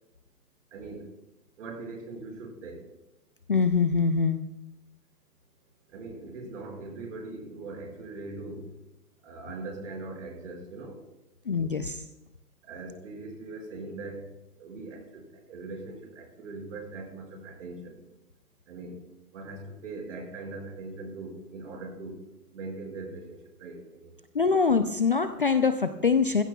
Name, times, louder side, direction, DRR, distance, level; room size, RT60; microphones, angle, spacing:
voice 1, 0.7-1.1 1.6-2.9 5.9-8.7 9.2-11.0 12.6-14.3 14.6-18.0 18.7-19.0 19.3-22.2 22.5-24.2, right 3 dB, 50° right, 1 dB, 5.4 m, -41 dB
voice 2, 3.5-4.4 11.5-12.0 24.3-26.4, left 5 dB, 40° left, 9 dB, 0.4 m, -24 dB
20.0 x 15.5 x 2.3 m, 0.93 s
hypercardioid pair, 150°, 48 cm